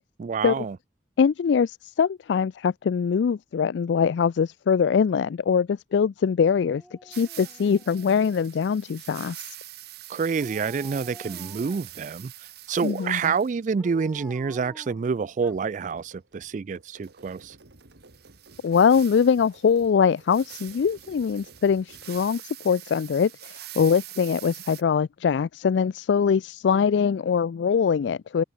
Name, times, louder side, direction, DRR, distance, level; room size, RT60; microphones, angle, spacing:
voice 1, 0.2-0.8 10.1-12.3 12.7-17.6, right 5 dB, 45° right, 0.4 m, -28 dB
voice 2, 1.2-9.5 12.8-13.3 18.6-28.4, left 6 dB, 75° left, 0.4 m, -23 dB
Dog, 6.6-8.7 10.3-12.0 13.8-15.9 16.2-16.3, equal, 5° right, 3.5 m, -49 dB
sound 1, 7.1-13.6 17.0-24.8, right 16 dB, 60° right, 0.8 m, -44 dB
sound 2, 15.4-22.3, right 2 dB, 85° right, 2.2 m, -54 dB
head